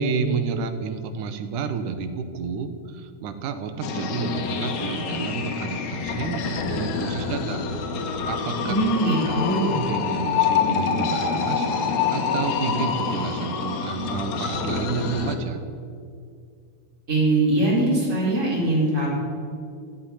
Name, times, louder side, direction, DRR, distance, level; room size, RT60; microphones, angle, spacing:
voice 1, 0.0-7.7 8.3-8.7 9.3-9.4 9.9-15.6, right 5 dB, 90° right, 9 dB, 2.6 m, -30 dB
sound 1, 3.8-15.4, left 6 dB, 70° left, 2.6 m, -26 dB
voice 2, 8.6-9.8 17.1-19.1, right 2 dB, 25° right, -6 dB, 4.9 m, -22 dB
14.0 x 8.1 x 9.9 m, 2.3 s
omnidirectional pair, 3.5 m